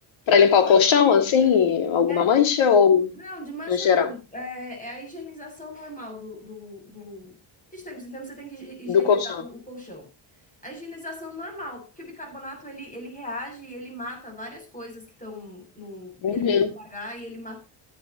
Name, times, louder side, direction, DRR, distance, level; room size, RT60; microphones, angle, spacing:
voice 1, 0.3-3.1 3.7-4.1 8.9-9.4 16.2-16.7, left 7 dB, 70° left, 2.6 m, -19 dB
voice 2, 3.1-7.4 7.7-10.1 10.6-17.6, left 1 dB, 15° left, 7.7 m, -38 dB
16.5 x 10.0 x 3.0 m
cardioid pair, 125°, 48 cm